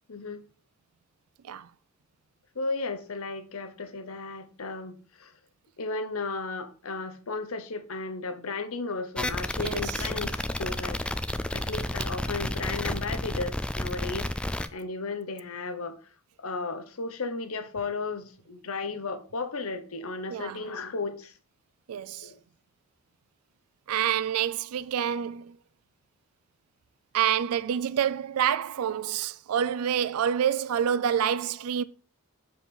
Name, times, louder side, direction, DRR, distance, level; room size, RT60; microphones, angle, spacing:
voice 1, 0.1-0.4 2.5-5.3 5.8-11.0 11.5-16.0 16.4-21.3 22.2-22.4, left 3 dB, 75° left, 0.9 m, -34 dB
sound 1, 9.2-14.7, left 1 dB, 5° left, 0.4 m, -31 dB
voice 2, 9.6-9.9 20.3-20.6 21.9-22.3 23.9-25.6 27.1-31.8, right 9 dB, 85° right, 0.4 m, -27 dB
7.0 x 4.8 x 5.4 m
head